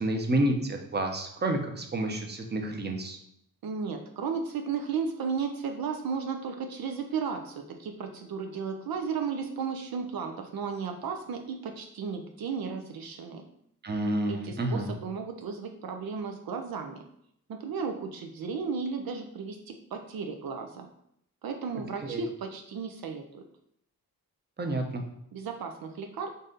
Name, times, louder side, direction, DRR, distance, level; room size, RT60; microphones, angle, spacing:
voice 1, 0.0-3.2 13.8-14.9 22.0-22.3 24.6-25.0, right 1 dB, 25° right, 3 dB, 0.7 m, -29 dB
voice 2, 3.6-13.4 14.3-17.0 17.5-20.9 21.4-23.4 25.3-26.3, right 5 dB, 75° right, 4 dB, 0.5 m, -34 dB
4.0 x 2.6 x 3.8 m, 0.73 s
cardioid pair, 65°, 37 cm